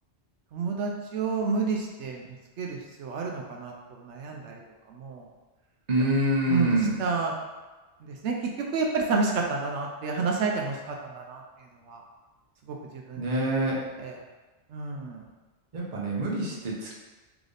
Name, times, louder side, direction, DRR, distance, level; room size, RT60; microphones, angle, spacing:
voice 1, 0.5-4.6 4.9-5.3 6.5-7.3 8.1-10.8 11.0-11.4 11.9-12.0 12.7-13.3 13.6-13.7 14.0-14.1 14.7-15.2, right 4 dB, 80° right, 0 dB, 0.9 m, -30 dB
voice 2, 5.9-7.0 13.2-14.0 15.7-17.0, right 1 dB, 40° right, -3 dB, 0.9 m, -26 dB
3.6 x 3.3 x 3.9 m, 1.2 s
omnidirectional pair, 1.2 m